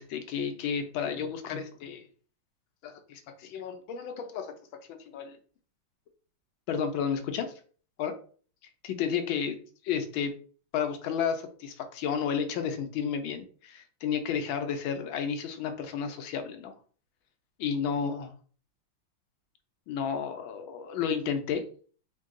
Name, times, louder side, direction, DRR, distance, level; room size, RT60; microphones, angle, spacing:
voice 1, 0.0-2.1 2.8-4.5 4.9-5.4 6.7-7.5 8.0-8.1 8.8-9.6 9.8-10.3 10.7-16.7 17.6-18.3 19.9-21.6, left 7 dB, 75° left, 7 dB, 1.4 m, -32 dB
4.4 x 2.3 x 3.6 m, 0.42 s
omnidirectional pair, 2.3 m